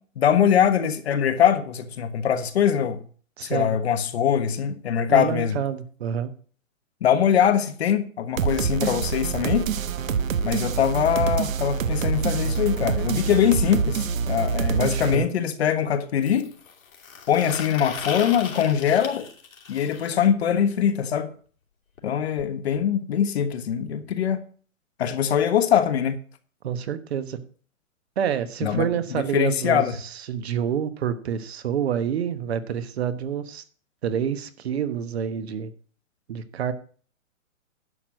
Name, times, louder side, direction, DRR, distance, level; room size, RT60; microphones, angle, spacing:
voice 1, 0.2-3.0 3.4-5.6 7.0-9.7 10.4-16.5 17.3-19.3 19.7-21.3 22.0-24.4 25.0-26.2 28.6-29.9, left 9 dB, 50° left, 1.3 m, -22 dB
voice 2, 3.4-3.7 5.1-6.3 14.8-15.3 26.6-27.4 28.2-33.6 34.0-35.7 36.3-36.7, right 8 dB, 50° right, 1.2 m, -28 dB
sound 1, 8.4-15.1, right 6 dB, 80° right, 1.1 m, -26 dB
sound 2, 14.2-14.3 16.2-20.1 22.0-22.1 22.4-22.5 22.7-22.9 23.8-23.9, left 5 dB, 85° left, 2.7 m, -38 dB
11.0 x 6.2 x 6.3 m
hypercardioid pair, 160°, 40 cm